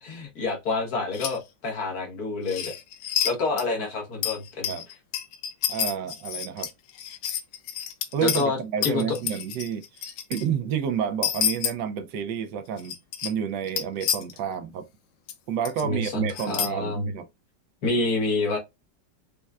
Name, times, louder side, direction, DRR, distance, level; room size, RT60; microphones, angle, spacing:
voice 1, 0.0-2.7 3.2-4.7 8.2-8.6 8.8-9.2 15.8-17.1 17.8-18.6, left 3 dB, 60° left, 1.4 m, -28 dB
sound 1, 1.1-1.4 2.5-3.3 3.6-3.7 4.2-8.4 8.8-10.4 11.2-11.7 12.8-13.3 13.7-14.4 15.3-15.4 15.7-15.8 16.3-16.7, left 9 dB, 80° left, 1.3 m, -29 dB
voice 2, 5.7-6.7 8.1-9.8 10.3-13.0 13.2-14.8 15.5-17.2, right 8 dB, 75° right, 1.2 m, -29 dB
5.3 x 2.2 x 2.3 m
omnidirectional pair, 2.0 m